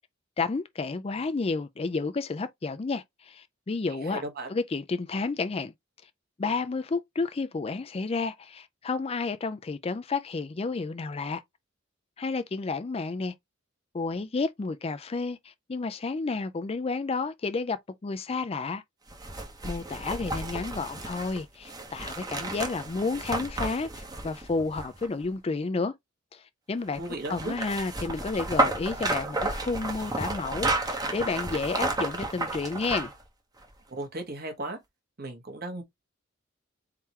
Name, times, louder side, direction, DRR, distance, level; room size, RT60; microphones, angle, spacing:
voice 1, 0.4-4.2 4.5-5.7 6.4-11.4 12.2-13.3 13.9-17.8 18.0-18.8 19.6-25.9 26.3-27.0 27.3-33.1, left 4 dB, 30° left, 0.4 m, -31 dB
voice 2, 4.0-4.5 27.0-27.5 33.9-34.8 35.2-35.8, right 2 dB, 50° right, 1.3 m, -36 dB
sound 1, 19.1-25.3 26.9-33.2 33.6-33.7, right 2 dB, 20° right, 0.9 m, -32 dB
4.4 x 3.7 x 2.8 m
head